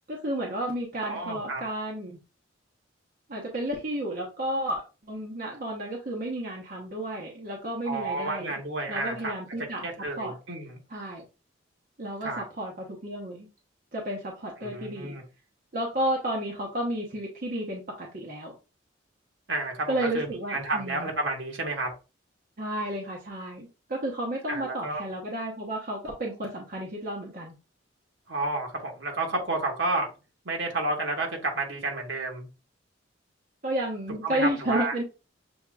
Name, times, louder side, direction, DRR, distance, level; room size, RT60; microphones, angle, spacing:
voice 1, 0.1-2.2 3.3-8.6 8.9-9.9 10.2-10.3 10.9-11.2 12.0-13.5 13.9-15.1 15.7-18.5 19.9-21.1 22.6-27.5 33.6-35.0, right 1 dB, 45° right, -1 dB, 0.9 m, -32 dB
voice 2, 1.0-1.6 7.8-9.3 9.8-10.8 12.2-12.4 14.6-15.2 19.5-21.9 24.5-25.0 28.3-30.1 30.4-32.5 34.2-34.9, right 2 dB, 70° right, 1 dB, 1.4 m, -31 dB
7.0 x 2.9 x 2.4 m, 0.30 s
head